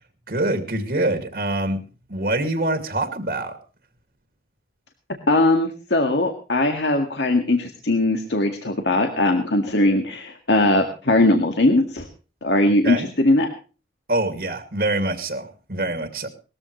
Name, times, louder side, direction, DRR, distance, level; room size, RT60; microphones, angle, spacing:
voice 1, 0.3-1.8 2.1-3.5 12.8-13.1 14.1-16.3, right 2 dB, 60° right, 7 dB, 2.4 m, -25 dB
voice 2, 5.3-12.1 12.4-13.5, left 2 dB, 85° left, 4 dB, 2.0 m, -20 dB
20.5 x 14.5 x 3.2 m, 0.36 s
head